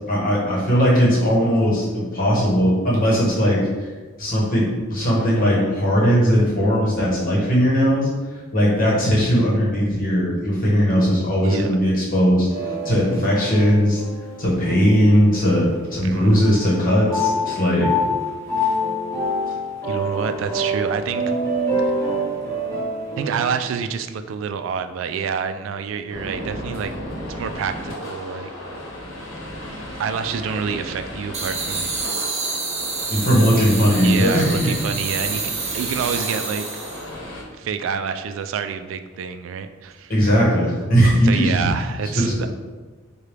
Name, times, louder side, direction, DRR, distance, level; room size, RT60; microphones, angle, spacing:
voice 1, 0.1-3.9 4.2-8.1 8.5-14.0 14.4-17.9 18.6-18.7 33.1-34.7 40.1-41.7 42.1-42.5, equal, 45° left, -5 dB, 1.1 m, -18 dB
sound 1, 12.5-16.0 16.3-23.6, equal, 15° left, 1.2 m, -26 dB
voice 2, 19.9-21.2 21.8-22.3 23.2-26.9 27.3-28.5 30.0-31.9 32.4-32.6 34.0-36.7 37.6-40.1 41.2-42.5, right 6 dB, 80° right, 9 dB, 0.3 m, -28 dB
sound 2, 26.1-37.4, left 1 dB, 85° left, 1.0 m, -34 dB
sound 3, 31.3-37.1, right 4 dB, 35° right, 0.6 m, -28 dB
4.7 x 2.3 x 3.3 m, 1.3 s
head